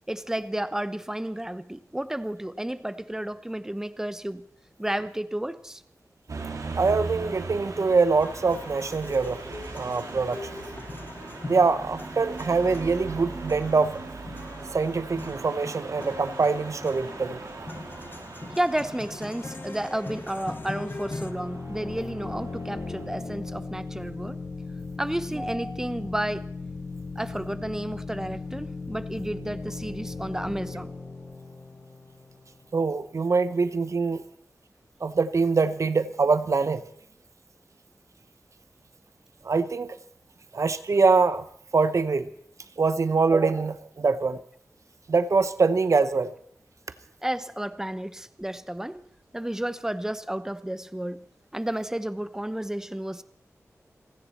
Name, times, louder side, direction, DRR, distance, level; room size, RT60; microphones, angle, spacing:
voice 1, 0.1-4.4 4.8-5.8 18.5-24.4 25.0-26.5 27.2-30.9 47.2-49.0 49.3-51.2 51.5-53.2, right 1 dB, 10° right, 13 dB, 0.9 m, -32 dB
sound 1, 6.3-23.0, right 3 dB, 85° right, 2.5 m, -40 dB
voice 2, 6.8-10.5 11.5-14.0 14.7-17.4 32.7-34.2 35.0-36.8 39.4-40.0 40.5-41.4 41.7-42.3 42.8-44.4 45.1-46.3, right 4 dB, 70° right, 13 dB, 0.9 m, -24 dB
sound 2, 8.2-21.3, left 2 dB, 40° left, 1.3 m, -41 dB
sound 3, 21.1-32.6, left 3 dB, 55° left, 3.8 m, -37 dB
29.5 x 10.0 x 4.3 m, 0.66 s
wide cardioid pair, 75°, 6 cm